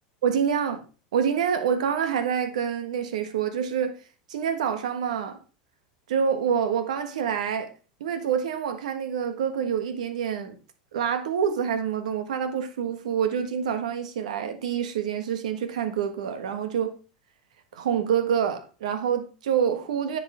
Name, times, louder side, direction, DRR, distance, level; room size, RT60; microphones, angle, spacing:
voice 1, 0.2-0.8 1.1-4.0 4.3-5.4 6.1-7.7 8.0-10.6 10.9-16.9 17.7-20.2, right 7 dB, 80° right, 1.3 m, -27 dB
9.6 x 5.5 x 3.3 m
hypercardioid pair, 100°, 4 cm